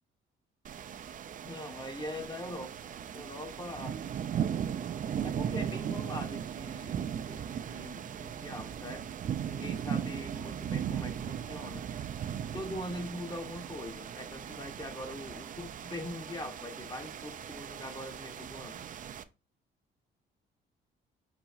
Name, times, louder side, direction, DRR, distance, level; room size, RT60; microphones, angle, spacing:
sound 1, 0.6-19.2, right 9 dB, 40° right, 0.4 m, -37 dB
voice 1, 1.4-4.3 5.2-9.1 9.5-11.9 12.5-18.9, left 1 dB, 20° left, 1.0 m, -42 dB
4.6 x 4.0 x 2.4 m
cardioid pair, 90°, 20 cm